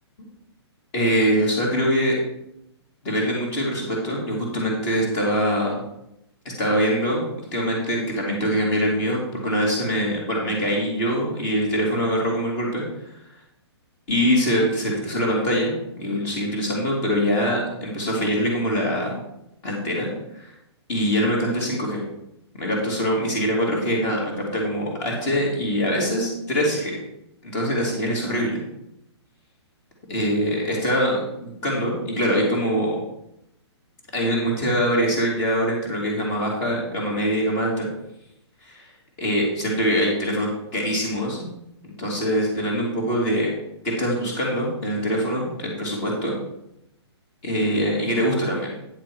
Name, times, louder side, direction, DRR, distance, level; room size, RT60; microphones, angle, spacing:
voice 1, 0.9-2.2 3.0-5.8 6.4-7.2 7.5-12.8 13.1-13.2 14.1-19.1 19.6-20.5 20.9-22.0 22.6-27.0 27.4-28.6 30.1-33.0 34.1-37.9 38.6-38.8 39.2-41.5 41.8-43.5 43.8-46.4 47.4-48.8, equal, 20° left, -2 dB, 2.5 m, -23 dB
9.9 x 6.6 x 4.7 m, 0.81 s
hypercardioid pair, 175°, 15 cm